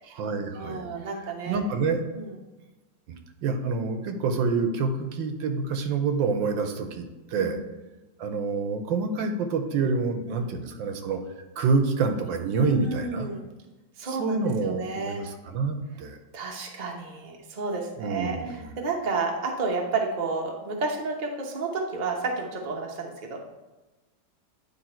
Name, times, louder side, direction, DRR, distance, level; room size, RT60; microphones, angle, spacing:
voice 1, 0.0-0.9 1.4-2.0 3.1-7.6 8.2-11.2 11.6-13.3 14.2-16.2 18.0-18.7, right 4 dB, 80° right, 6 dB, 1.5 m, -27 dB
voice 2, 0.5-1.6 2.1-2.4 7.3-7.6 10.3-10.5 12.6-13.4 14.0-15.3 16.3-23.4, right 3 dB, 35° right, 0 dB, 0.8 m, -31 dB
9.6 x 3.5 x 4.4 m, 1.1 s
omnidirectional pair, 2.0 m